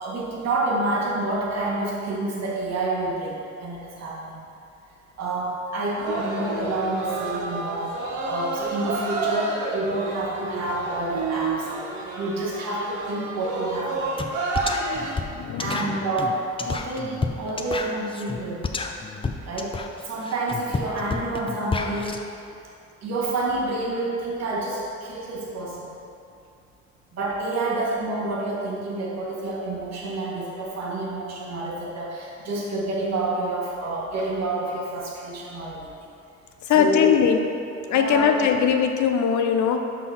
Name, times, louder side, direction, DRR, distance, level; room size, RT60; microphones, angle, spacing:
voice 1, 0.0-4.4 5.2-8.0 8.2-11.7 12.1-14.2 15.6-18.6 19.4-22.2 23.0-25.9 27.1-35.9 36.7-37.0 37.9-38.2, right 2 dB, 60° right, -4 dB, 1.5 m, -28 dB
sound 1, 6.0-15.1, right 3 dB, 80° right, 1.0 m, -30 dB
sound 2, 14.2-14.3 14.5-22.2, left 4 dB, 20° left, 0.5 m, -30 dB
voice 2, 15.4-15.8 36.6-37.5 37.9-39.8, left 7 dB, 70° left, 5 dB, 0.6 m, -20 dB
5.8 x 5.7 x 4.2 m, 2.6 s
cardioid pair, 90°, 30 cm